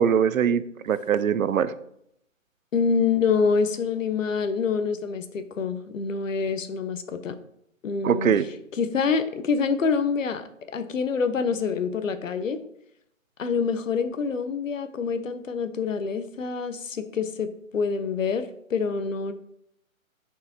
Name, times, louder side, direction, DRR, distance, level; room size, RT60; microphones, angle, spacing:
voice 1, 0.0-1.7 8.0-8.4, right 8 dB, 80° right, 15 dB, 0.6 m, -22 dB
voice 2, 2.7-7.4 7.8-8.4 8.8-12.6 13.4-17.5 17.7-19.3, left 5 dB, 70° left, 11 dB, 0.8 m, -26 dB
7.3 x 4.7 x 2.9 m, 0.74 s
hypercardioid pair, 165°, 41 cm